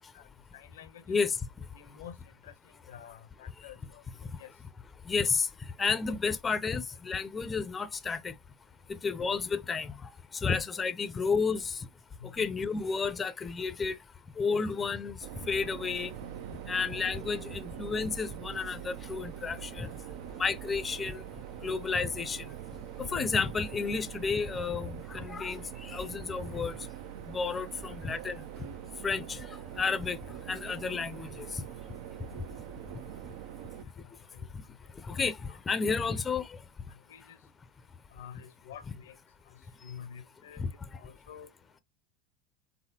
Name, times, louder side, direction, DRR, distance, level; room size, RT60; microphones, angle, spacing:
voice 1, 0.5-1.2 1.7-2.2 2.4-4.0 4.4-4.5 9.2-9.4 10.7-10.8 12.2-12.5 14.5-14.9 17.1-17.2 23.0-23.3 33.9-34.0 34.3-34.5 35.1-35.8 36.9-37.4 38.1-39.1 39.5-40.6 40.9-41.5, left 8 dB, 90° left, 0.8 m, -49 dB
voice 2, 5.1-5.5 5.8-8.3 9.0-9.9 10.4-11.7 12.3-13.9 14.4-15.2 15.5-16.1 16.7-19.9 20.4-21.2 21.6-22.4 23.1-26.7 27.3-28.4 29.0-29.4 29.8-30.2 30.5-31.5 35.1-35.4 35.7-36.4, left 5 dB, 20° left, 0.5 m, -31 dB
sound 1, 15.2-33.8, right 10 dB, 70° right, 0.5 m, -43 dB
4.0 x 3.8 x 2.9 m
supercardioid pair, 110°, 0 cm